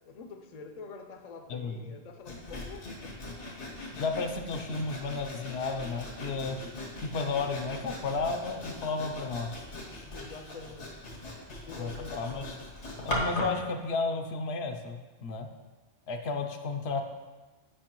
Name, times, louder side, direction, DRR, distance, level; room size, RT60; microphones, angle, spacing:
voice 1, 0.0-3.2 10.0-11.0 11.6-12.4, left 4 dB, 50° left, 5 dB, 0.5 m, -46 dB
voice 2, 1.5-1.9 4.0-6.6 7.0-9.6 11.8-12.6 13.0-15.5 16.1-17.0, left 4 dB, 75° left, 5 dB, 0.8 m, -33 dB
Sawing, 2.2-13.6, left 1 dB, 90° left, 1.5 m, -39 dB
8.5 x 5.1 x 3.0 m, 1.2 s
omnidirectional pair, 1.1 m